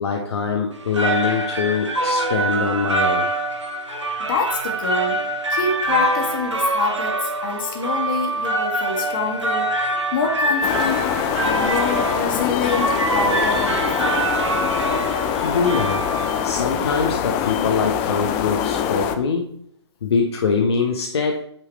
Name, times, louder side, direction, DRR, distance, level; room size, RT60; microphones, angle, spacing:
voice 1, 0.0-3.3 15.4-16.1 16.4-19.5 20.0-21.4, left 5 dB, 65° left, 1 dB, 1.0 m, -23 dB
sound 1, 0.7-16.6, right 2 dB, 85° right, 1.1 m, -24 dB
voice 2, 4.2-5.2 5.5-9.7 10.1-11.0 11.4-14.2, left 4 dB, 45° left, 2 dB, 1.9 m, -26 dB
sound 2, 10.6-19.2, left 9 dB, 25° left, 0.6 m, -24 dB
8.9 x 4.7 x 3.4 m, 0.68 s
figure-of-eight pair, 125°, 15 cm